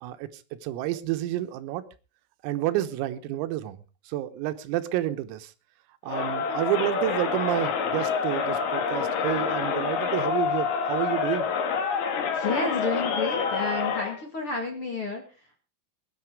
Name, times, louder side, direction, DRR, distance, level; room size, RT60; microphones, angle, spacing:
voice 1, 0.0-1.8 2.4-5.5 6.0-11.5, right 14 dB, 90° right, 3.8 m, -30 dB
Crowd, 6.1-14.2, left 6 dB, 55° left, 3.5 m, -27 dB
voice 2, 12.3-15.6, left 3 dB, 40° left, 2.1 m, -31 dB
21.0 x 9.8 x 4.8 m
omnidirectional pair, 6.0 m